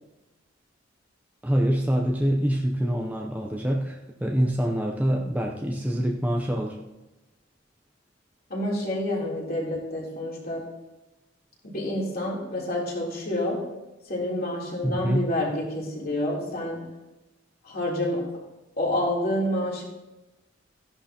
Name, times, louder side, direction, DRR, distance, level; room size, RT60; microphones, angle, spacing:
voice 1, 1.4-6.8 14.8-15.3, equal, 10° right, 0 dB, 0.6 m, -25 dB
voice 2, 8.5-10.6 11.6-13.6 14.1-16.8 17.6-18.2 18.8-19.8, left 1 dB, 55° left, -3 dB, 3.3 m, -28 dB
14.0 x 11.0 x 2.9 m, 1.1 s
head